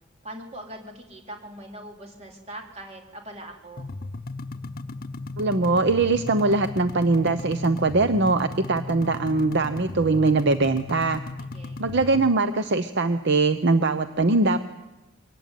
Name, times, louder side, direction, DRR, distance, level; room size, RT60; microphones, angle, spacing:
voice 1, 0.2-3.9 11.4-11.8, right 1 dB, 30° right, 1 dB, 4.0 m, -41 dB
sound 1, 3.8-12.3, left 3 dB, 45° left, 0.8 m, -36 dB
voice 2, 5.4-11.2 11.8-14.6, right 3 dB, 55° right, 11 dB, 0.8 m, -22 dB
24.0 x 18.5 x 9.3 m, 1.1 s
head